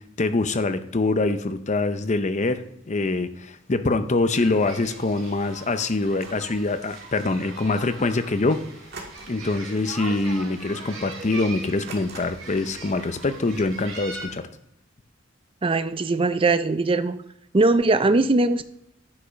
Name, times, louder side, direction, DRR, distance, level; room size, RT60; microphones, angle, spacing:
voice 1, 0.0-8.6 9.3-14.5, left 3 dB, 35° left, 10 dB, 0.6 m, -24 dB
sound 1, 4.3-14.3, right 3 dB, 75° right, 4.2 m, -40 dB
sound 2, 6.1-6.6 8.9-9.6 9.9-10.2 10.6-10.7 11.9-12.6, right 3 dB, 50° right, 1.7 m, -42 dB
voice 2, 15.6-17.2 17.5-18.6, right 3 dB, 25° right, 12 dB, 0.5 m, -20 dB
10.0 x 5.6 x 5.2 m, 0.79 s
head